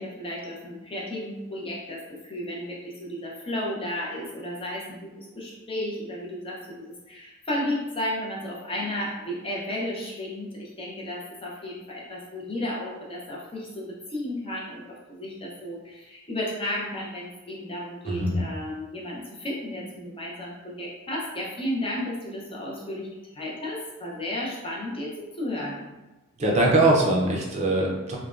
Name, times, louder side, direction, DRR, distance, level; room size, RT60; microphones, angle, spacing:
voice 1, 0.0-25.9, left 1 dB, 25° left, -4 dB, 0.6 m, -33 dB
voice 2, 18.1-18.4 26.4-28.2, right 2 dB, 30° right, -1 dB, 0.5 m, -22 dB
3.2 x 2.2 x 2.4 m, 1.1 s
head